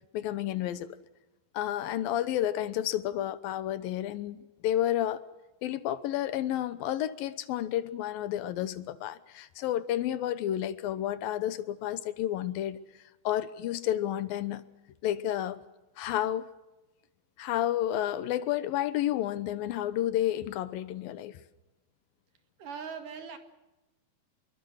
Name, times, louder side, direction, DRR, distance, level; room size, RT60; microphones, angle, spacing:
voice 1, 0.1-0.9 1.5-5.2 5.6-12.8 13.2-14.7 15.0-15.6 16.0-16.5 17.4-21.4, left 12 dB, 75° left, 14 dB, 2.7 m, -31 dB
voice 2, 22.6-23.4, right 6 dB, 60° right, 6 dB, 3.5 m, -40 dB
27.0 x 23.0 x 6.5 m, 1.0 s
omnidirectional pair, 4.5 m